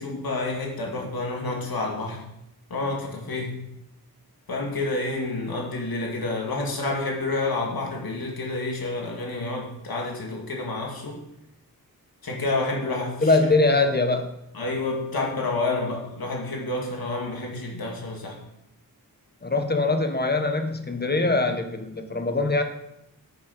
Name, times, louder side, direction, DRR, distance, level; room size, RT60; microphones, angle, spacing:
voice 1, 0.0-2.2 2.7-3.6 4.5-11.2 12.2-13.3 14.5-18.4, left 2 dB, 70° left, -1 dB, 2.4 m, -29 dB
voice 2, 13.2-14.3 19.4-22.6, left 3 dB, 25° left, 6 dB, 1.2 m, -22 dB
9.9 x 6.4 x 5.6 m, 0.83 s
wide cardioid pair, 105°, 37 cm